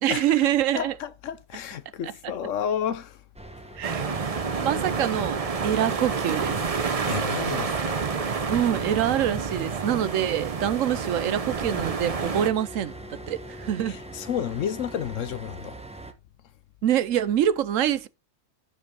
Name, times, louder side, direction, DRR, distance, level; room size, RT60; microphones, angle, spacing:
voice 1, 0.0-1.0 2.0-2.1 3.7-6.6 8.5-14.0 16.8-18.1, right 10 dB, 75° right, 1.1 m, -25 dB
voice 2, 0.7-3.2 4.1-4.2 7.1-8.1 13.9-15.8, left 9 dB, 70° left, 1.1 m, -31 dB
sound 1, 3.3-16.1, right 1 dB, 5° right, 1.0 m, -42 dB
sound 2, 3.8-12.5, right 5 dB, 35° right, 0.7 m, -29 dB
12.5 x 5.2 x 3.8 m
omnidirectional pair, 1.4 m